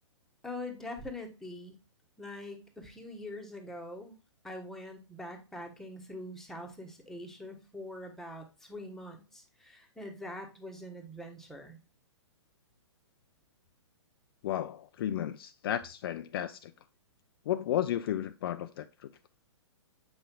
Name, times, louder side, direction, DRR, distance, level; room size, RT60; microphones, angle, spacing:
voice 1, 0.4-1.8 2.2-4.1 4.4-11.8, left 1 dB, ahead, 1.2 m, -43 dB
voice 2, 14.4-16.7 17.5-19.1, left 11 dB, 50° left, 0.4 m, -33 dB
7.9 x 5.5 x 2.2 m
hypercardioid pair, 130°, 16 cm